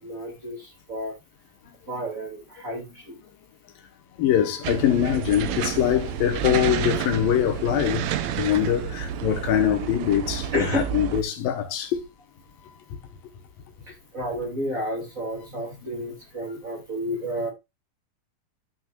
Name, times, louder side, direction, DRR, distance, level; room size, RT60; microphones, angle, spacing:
voice 1, 0.0-1.1 1.9-3.1 5.8-5.9 10.5-10.9 14.1-17.5, equal, 25° right, 2.6 m, -31 dB
voice 2, 4.2-8.1 8.4-12.0, left 10 dB, 80° left, 2.9 m, -23 dB
sound 1, 4.6-11.2, right 9 dB, 75° right, 1.6 m, -30 dB
13.5 x 6.2 x 2.4 m
omnidirectional pair, 4.1 m